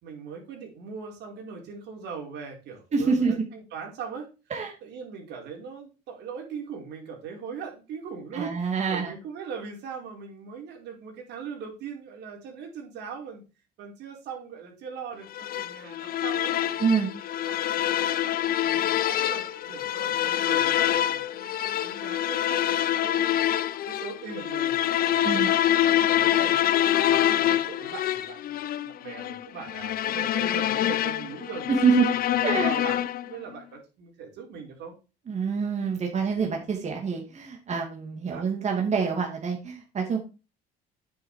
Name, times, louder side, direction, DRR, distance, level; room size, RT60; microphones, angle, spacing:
voice 1, 0.0-4.3 4.8-13.4 13.8-17.0 17.4-18.1 18.6-26.6 27.0-31.6 32.4-34.9 38.3-38.4, right 6 dB, 75° right, 1 dB, 4.8 m, -40 dB
voice 2, 2.9-3.3 4.5-4.7 8.3-9.1 16.8-17.1 25.2-25.5 31.7-32.1 32.4-32.8 35.3-40.2, right 5 dB, 40° right, 1 dB, 2.8 m, -26 dB
sound 1, 15.3-33.4, left 12 dB, 55° left, 0.7 m, -26 dB
9.1 x 7.8 x 4.9 m, 0.31 s
cardioid pair, 105°, 18 cm